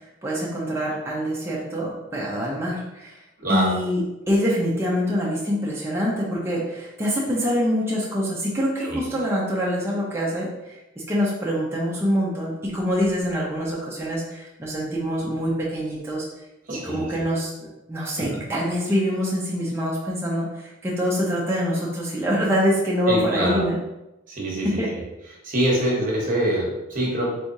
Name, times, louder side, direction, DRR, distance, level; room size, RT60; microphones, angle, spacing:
voice 1, 0.2-3.2 3.5-10.8 11.1-16.3 16.8-23.8 24.6-24.9, equal, 15° right, -5 dB, 0.6 m, -25 dB
voice 2, 3.4-3.7 8.8-9.0 16.7-17.2 18.2-18.4 23.1-23.6 24.3-24.8 25.4-27.3, right 1 dB, 45° right, -3 dB, 1.1 m, -25 dB
3.5 x 3.3 x 2.6 m, 0.97 s
head